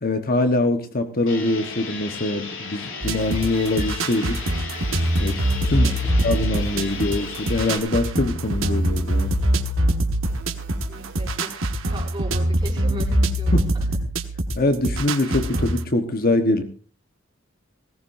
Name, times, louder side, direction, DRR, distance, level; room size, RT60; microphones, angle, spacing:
voice 1, 0.0-4.4 5.2-9.3 14.5-16.6, left 2 dB, 45° left, 7 dB, 1.3 m, -23 dB
sound 1, 1.3-7.8, left 4 dB, 70° left, 3.7 m, -35 dB
sound 2, 3.0-15.8, right 1 dB, 80° right, 1.6 m, -24 dB
voice 2, 10.7-11.5 11.9-13.9, right 1 dB, 20° right, -2 dB, 6.5 m, -38 dB
19.0 x 17.5 x 2.7 m, 0.38 s
head